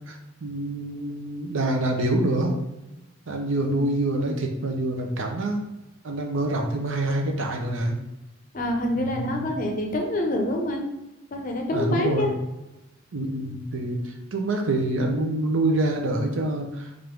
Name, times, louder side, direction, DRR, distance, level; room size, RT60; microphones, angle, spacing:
voice 1, 0.4-2.5 3.3-5.6 6.0-8.0 9.0-9.5 11.7-12.3 13.1-17.1, right 2 dB, 65° right, 2 dB, 0.6 m, -26 dB
voice 2, 8.5-10.9 11.3-12.3, left 1 dB, 40° left, 2 dB, 0.6 m, -26 dB
3.6 x 2.6 x 4.5 m, 0.97 s
head